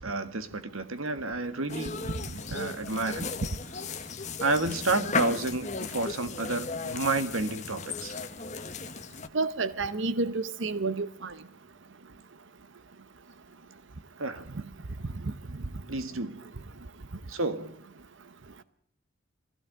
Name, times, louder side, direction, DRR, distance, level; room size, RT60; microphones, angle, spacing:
voice 1, 0.0-2.1 2.5-3.3 4.4-8.2 14.2-14.5 15.9-16.4 17.3-17.8, right 2 dB, 80° right, 1.8 m, -30 dB
sound 1, 1.7-9.3, left 4 dB, 35° left, 1.3 m, -36 dB
voice 2, 9.3-11.3, right 3 dB, 60° right, 0.8 m, -29 dB
21.5 x 16.5 x 8.0 m
head